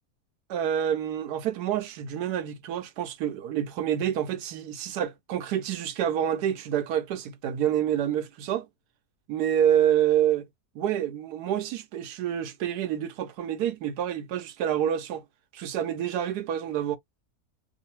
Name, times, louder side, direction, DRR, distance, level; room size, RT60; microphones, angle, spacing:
voice 1, 0.5-8.7 9.3-10.5 10.7-15.2 15.5-17.0, right 10 dB, 85° right, 1.2 m, -27 dB
3.1 x 2.0 x 2.9 m
omnidirectional pair, 1.7 m